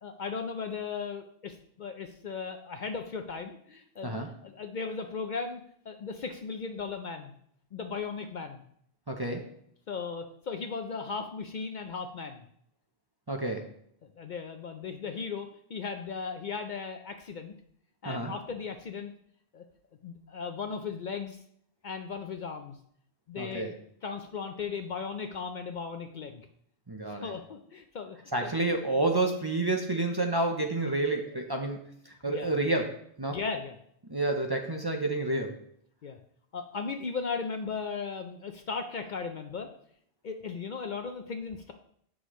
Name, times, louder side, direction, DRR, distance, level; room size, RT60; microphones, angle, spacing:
voice 1, 0.0-4.1 4.4-7.3 7.7-8.6 9.9-12.4 14.2-17.5 18.0-19.1 19.5-19.6 20.0-21.4 21.8-22.8 23.3-23.8 24.0-26.5 27.2-28.7 32.3-32.5 33.3-33.8 36.0-36.2 36.5-39.7 40.2-41.7, left 5 dB, 55° left, 6 dB, 0.6 m, -37 dB
voice 2, 9.1-9.5 13.3-13.7 18.0-18.3 23.4-23.7 26.9-27.3 28.3-31.8 32.1-33.4 34.1-35.5, right 2 dB, 30° right, 2 dB, 0.6 m, -29 dB
8.0 x 6.2 x 3.1 m, 0.67 s
omnidirectional pair, 1.1 m